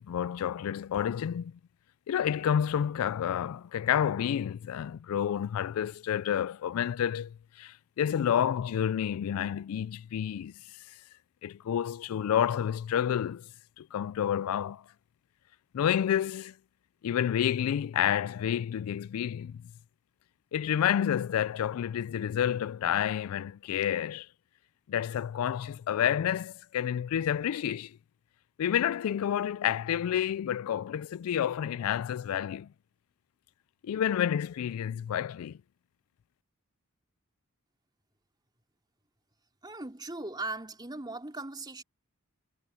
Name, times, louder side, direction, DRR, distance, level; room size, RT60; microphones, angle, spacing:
voice 1, 0.0-1.5 2.1-10.8 11.4-13.5 13.8-14.8 15.7-16.5 17.0-19.7 20.5-24.3 24.9-28.0 28.6-32.7 33.8-35.6, left 9 dB, 75° left, 0.3 m, -29 dB
voice 2, 39.6-41.8, right 2 dB, 20° right, 3.2 m, -38 dB
head